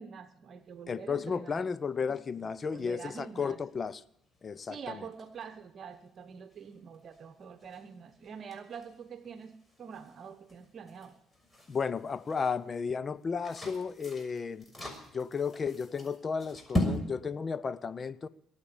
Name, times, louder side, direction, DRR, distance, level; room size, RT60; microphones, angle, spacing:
voice 1, 0.0-1.6 2.1-2.2 2.6-3.6 4.7-11.2, right 6 dB, 50° right, 1.1 m, -46 dB
sound 1, 0.6-17.0, left 1 dB, 20° left, 6.2 m, -42 dB
voice 2, 0.9-4.0 4.4-5.0 11.7-14.6 15.1-18.3, left 5 dB, 40° left, 0.9 m, -33 dB
22.5 x 9.0 x 7.0 m
hypercardioid pair, 55°, 0 cm